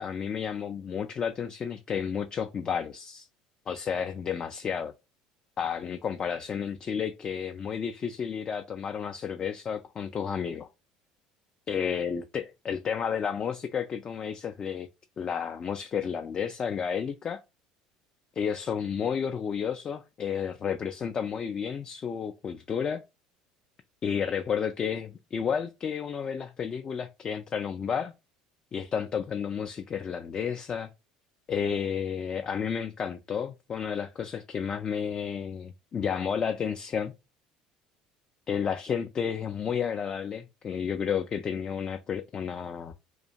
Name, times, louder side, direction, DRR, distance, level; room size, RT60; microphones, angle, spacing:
voice 1, 0.0-3.3 3.7-4.9 5.6-10.7 11.7-14.9 15.2-17.4 18.4-23.0 24.0-28.1 28.7-30.9 31.5-37.1 38.5-42.9, left 7 dB, 35° left, 0.3 m, -31 dB
2.5 x 2.2 x 2.8 m
hypercardioid pair, 80°, 2 cm